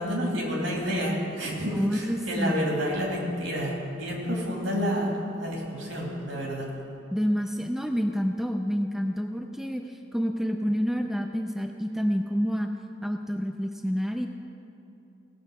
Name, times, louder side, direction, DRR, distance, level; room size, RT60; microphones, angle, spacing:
voice 1, 0.0-6.7, equal, 70° right, -2 dB, 2.5 m, -29 dB
voice 2, 1.7-2.6 7.1-9.8 10.1-12.7 13.0-14.3, equal, ahead, 4 dB, 0.4 m, -28 dB
17.0 x 6.5 x 4.8 m, 2.7 s
head